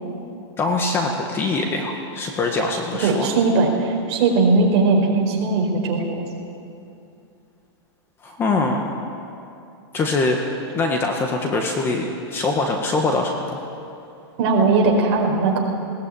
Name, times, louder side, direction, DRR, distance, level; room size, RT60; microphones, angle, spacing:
voice 1, 0.6-3.3 8.2-8.9 9.9-13.6, left 3 dB, 15° left, 2 dB, 1.6 m, -23 dB
voice 2, 3.0-6.2 14.4-15.6, right 3 dB, 35° right, 0 dB, 4.7 m, -19 dB
21.0 x 18.0 x 9.1 m, 2.6 s
supercardioid pair, 165°, 14 cm